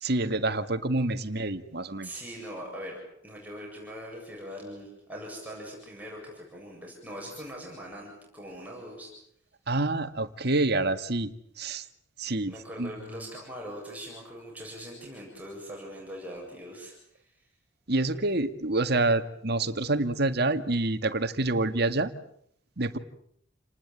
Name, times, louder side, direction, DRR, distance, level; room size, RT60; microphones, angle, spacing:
voice 1, 0.0-2.1 9.7-11.3 11.6-11.9 12.2-12.9 17.9-22.1 22.8-23.0, right 2 dB, 55° right, 10 dB, 1.9 m, -27 dB
voice 2, 2.0-3.0 3.2-9.1 12.5-17.2, equal, 10° right, -2 dB, 7.6 m, -41 dB
29.5 x 19.5 x 9.0 m, 0.69 s
head